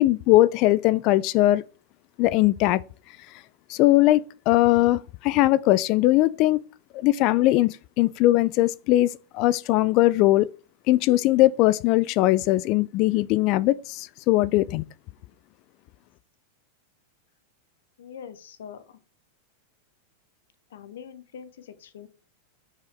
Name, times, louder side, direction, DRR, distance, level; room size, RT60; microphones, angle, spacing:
voice 1, 0.0-1.6 2.2-2.8 3.7-6.6 6.9-10.5 10.9-14.8, left 16 dB, 50° left, 0.4 m, -20 dB
voice 2, 18.0-19.0 20.7-22.1, left 8 dB, 75° left, 1.0 m, -43 dB
5.9 x 4.8 x 4.3 m
hypercardioid pair, 105°, 0 cm